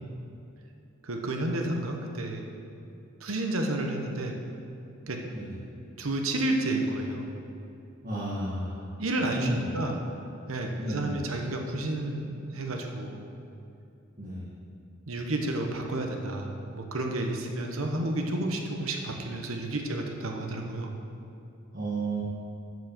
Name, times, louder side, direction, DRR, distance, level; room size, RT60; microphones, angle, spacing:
voice 1, 1.0-2.4 3.2-4.3 5.1-5.2 6.0-7.3 9.0-10.0 10.5-13.2 15.1-20.9, right 1 dB, 90° right, 2 dB, 1.1 m, -31 dB
voice 2, 8.0-8.8 9.3-9.7 10.8-11.2 14.2-14.5 21.7-22.2, right 2 dB, 45° right, -9 dB, 1.6 m, -32 dB
7.3 x 6.2 x 7.2 m, 2.7 s
head